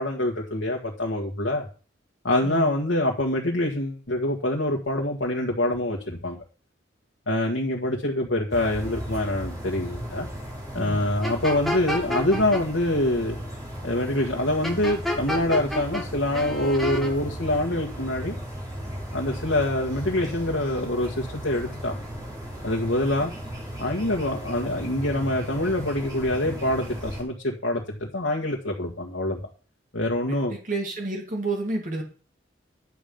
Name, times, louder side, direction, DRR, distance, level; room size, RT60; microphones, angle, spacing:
voice 1, 0.0-1.7 2.2-6.4 7.3-10.3 10.7-13.4 13.8-18.3 19.1-22.0 22.6-23.3 23.8-29.4 29.9-30.5, left 1 dB, 90° left, 0 dB, 1.7 m, -25 dB
sound 1, 8.5-27.2, equal, 20° right, 4.1 m, -36 dB
voice 2, 10.7-11.0 30.3-32.0, right 2 dB, 45° right, 0 dB, 2.7 m, -30 dB
sound 2, 11.2-12.6 14.6-16.0 16.3-17.1, left 1 dB, ahead, 1.6 m, -29 dB
11.0 x 7.1 x 5.2 m, 0.36 s
head